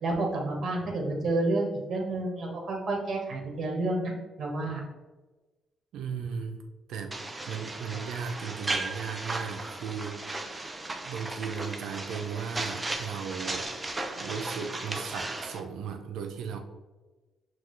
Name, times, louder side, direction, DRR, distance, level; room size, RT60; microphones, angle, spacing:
voice 1, 0.0-4.1 4.4-4.8, right 2 dB, 55° right, 0 dB, 1.2 m, -30 dB
voice 2, 5.9-6.6 6.9-7.2 7.5-10.7 11.0-13.7 14.1-16.6, right 6 dB, 80° right, 5 dB, 0.6 m, -36 dB
sound 1, 7.1-15.6, right 2 dB, 20° right, 0.5 m, -36 dB
5.9 x 2.4 x 3.2 m, 1.2 s
cardioid pair, 90°, 0 cm